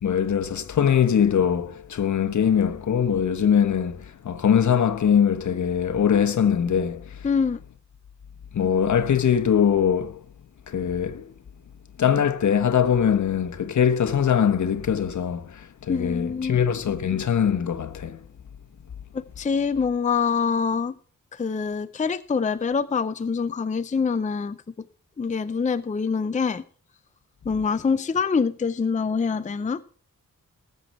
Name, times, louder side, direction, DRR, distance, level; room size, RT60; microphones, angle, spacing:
voice 1, 0.0-7.3 8.5-10.2 10.7-11.3 12.0-18.2, left 8 dB, 65° left, 1.3 m, -22 dB
voice 2, 7.2-7.6 15.9-16.6 19.1-20.9 21.3-24.6 25.2-26.6 27.5-29.8, left 5 dB, 25° left, 0.5 m, -25 dB
19.0 x 7.9 x 4.4 m
wide cardioid pair, 125°, 32 cm